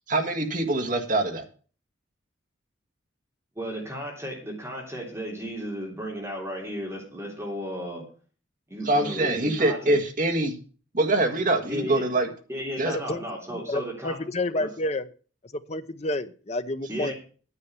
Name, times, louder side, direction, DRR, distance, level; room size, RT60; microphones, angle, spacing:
voice 1, 0.1-1.4 8.8-10.6 10.9-12.3 12.8-13.0, right 2 dB, 40° right, 5 dB, 1.7 m, -24 dB
voice 2, 3.5-8.0 8.7-10.0 11.7-12.0 12.5-14.2 14.6-14.7 16.9-17.1, equal, 15° right, -2 dB, 3.3 m, -34 dB
voice 3, 12.8-13.2 13.5-15.1 15.7-17.1, left 2 dB, 35° left, 10 dB, 0.7 m, -30 dB
9.7 x 7.7 x 6.9 m, 0.38 s
head